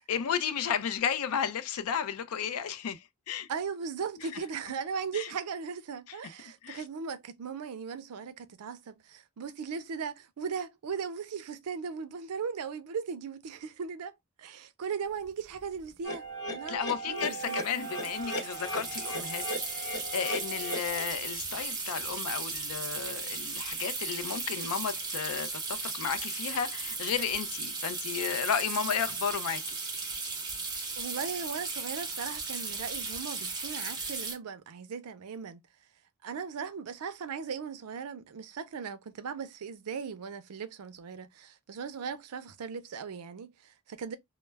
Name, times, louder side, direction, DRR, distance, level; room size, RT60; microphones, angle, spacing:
voice 1, 0.1-3.5 4.2-4.3 5.1-5.3 6.1-6.2 6.6-6.8 16.7-29.6 30.0-30.1, left 7 dB, 75° left, 0.4 m, -33 dB
voice 2, 3.5-14.1 14.4-17.6 31.0-35.6 36.2-44.2, right 6 dB, 90° right, 0.4 m, -38 dB
sound 1, 15.2-15.3 15.5-15.8 17.2-34.4, right 4 dB, 20° right, 0.7 m, -36 dB
sound 2, 16.0-21.0, equal, 55° left, 0.9 m, -37 dB
2.2 x 2.0 x 3.2 m
head